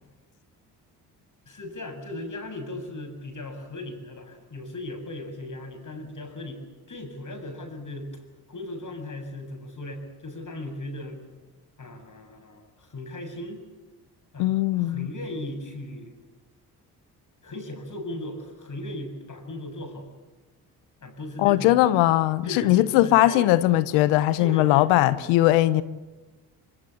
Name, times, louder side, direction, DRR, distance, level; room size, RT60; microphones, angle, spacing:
voice 1, 1.5-6.6 6.9-11.2 11.8-13.6 14.3-16.1 17.4-20.1 21.0-21.8 22.4-23.5 24.4-25.1, left 1 dB, 40° left, 7.5 m, -37 dB
voice 2, 14.4-15.1 21.4-25.8, left 16 dB, 80° left, 1.0 m, -20 dB
24.0 x 23.5 x 8.5 m
hypercardioid pair, 50°, 45 cm